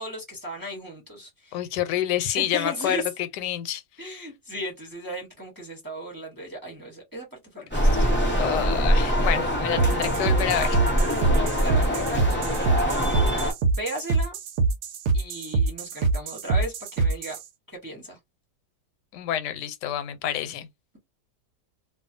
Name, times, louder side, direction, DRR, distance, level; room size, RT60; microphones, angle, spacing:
voice 1, 0.0-1.6 2.4-3.0 4.0-8.1 11.1-12.8 13.3-14.4 15.1-17.3 17.8-18.2, right 1 dB, 20° right, 0.7 m, -36 dB
voice 2, 1.5-3.0 3.4-3.8 8.4-10.8 19.1-20.7, left 11 dB, 90° left, 1.2 m, -28 dB
sound 1, 7.7-13.5, equal, 10° left, 0.9 m, -23 dB
sound 2, 9.8-17.4, right 3 dB, 70° right, 0.8 m, -24 dB
2.6 x 2.3 x 2.5 m
omnidirectional pair, 1.8 m